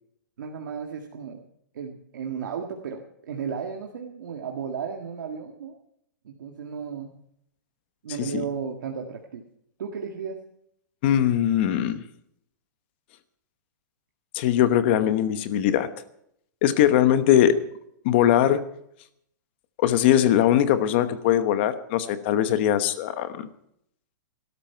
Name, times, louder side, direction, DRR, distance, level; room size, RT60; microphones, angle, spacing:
voice 1, 0.4-1.4 1.7-5.8 6.2-7.1 8.0-9.4 9.8-10.4, right 6 dB, 80° right, 2 dB, 1.8 m, -34 dB
voice 2, 11.0-12.0 14.3-15.9 16.6-17.6 18.0-18.6 19.8-23.5, left 11 dB, 35° left, 11 dB, 1.1 m, -21 dB
18.5 x 12.5 x 4.5 m, 0.72 s
supercardioid pair, 175°, 10 cm